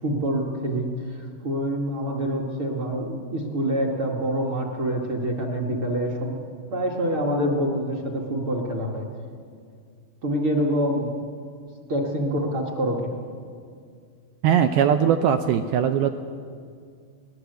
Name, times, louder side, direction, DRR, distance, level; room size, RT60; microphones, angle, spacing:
voice 1, 0.0-6.3 6.7-9.1 10.2-11.1 11.9-13.2, equal, 45° right, 1 dB, 1.7 m, -26 dB
voice 2, 14.4-16.2, right 8 dB, 85° right, 8 dB, 2.2 m, -20 dB
23.0 x 18.5 x 8.1 m, 2.2 s
omnidirectional pair, 5.2 m